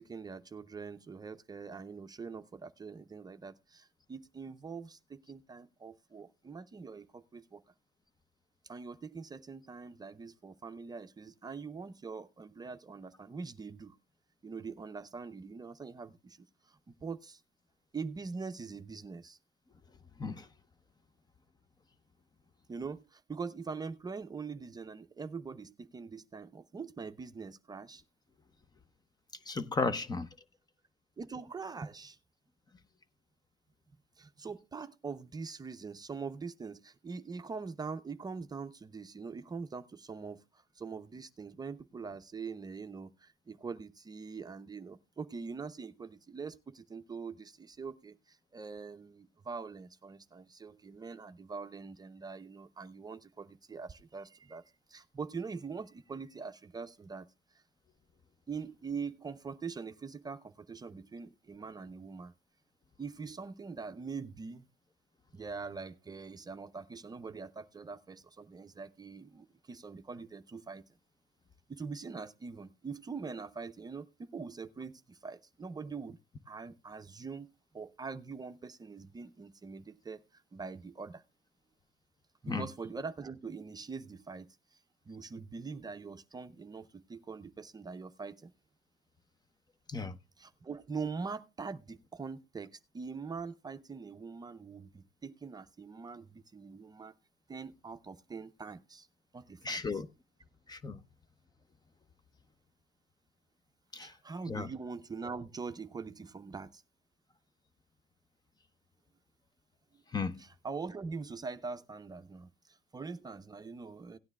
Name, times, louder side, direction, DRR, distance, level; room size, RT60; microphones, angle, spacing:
voice 1, 0.0-7.6 8.6-14.0 14.4-17.4 17.9-19.4 22.7-28.0 31.2-32.2 34.2-54.6 54.9-57.3 58.5-62.3 63.0-64.7 65.3-70.8 71.7-76.2 76.5-81.2 82.4-84.5 85.1-88.5 90.4-97.1 97.5-99.1 99.3-100.0 104.0-106.8 110.4-114.2, right 5 dB, 25° right, 0.6 m, -43 dB
voice 2, 29.5-30.3 82.5-82.6 89.9-90.1 99.6-100.1 100.7-101.0 103.9-104.1 104.5-104.7 110.1-110.4, left 4 dB, 25° left, 0.7 m, -34 dB
17.0 x 9.6 x 2.3 m
cardioid pair, 110°, 17 cm